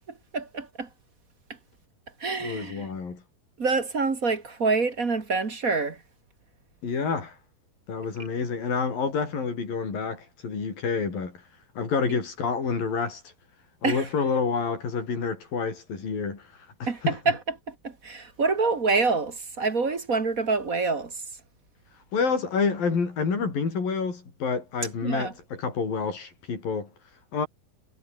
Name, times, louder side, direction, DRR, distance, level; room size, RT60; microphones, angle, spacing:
voice 1, 0.3-0.9 2.2-2.9 3.6-6.0 13.8-14.0 16.9-17.0 17.2-17.4 17.7-21.1 25.0-25.3, right 4 dB, 30° right, 1.6 m, -26 dB
voice 2, 2.4-3.2 6.8-7.4 7.9-11.4 11.8-13.2 13.8-16.5 16.8-17.2 22.1-26.9 27.3-27.5, left 5 dB, 55° left, 7.4 m, -28 dB
omnidirectional pair, 4.7 m